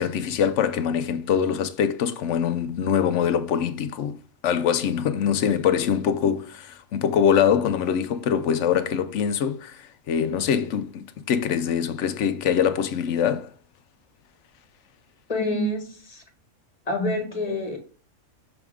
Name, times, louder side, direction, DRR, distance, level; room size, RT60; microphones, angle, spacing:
voice 1, 0.0-4.2 4.4-13.5, left 8 dB, 65° left, 0.9 m, -23 dB
voice 2, 15.3-16.2 16.9-17.8, left 1 dB, 30° left, 1.3 m, -27 dB
6.1 x 3.5 x 4.9 m
omnidirectional pair, 1.4 m